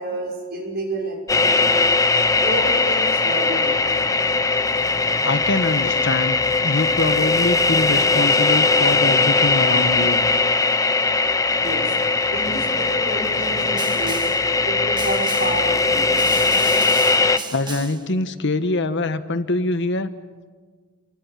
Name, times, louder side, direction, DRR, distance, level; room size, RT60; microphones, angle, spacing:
voice 1, 0.0-1.9 2.4-3.8 11.5-11.9 12.3-14.3 14.6-16.2, right 1 dB, 50° right, 2 dB, 5.9 m, -30 dB
sound 1, 1.3-17.4, left 3 dB, 15° left, 0.8 m, -19 dB
voice 2, 5.2-10.2 17.1-20.1, left 2 dB, 60° left, 10 dB, 1.3 m, -24 dB
Snare drum, 13.8-14.5 15.0-15.7 16.2-18.1, right 5 dB, 20° right, 1.7 m, -35 dB
29.5 x 24.5 x 7.4 m, 1.4 s
head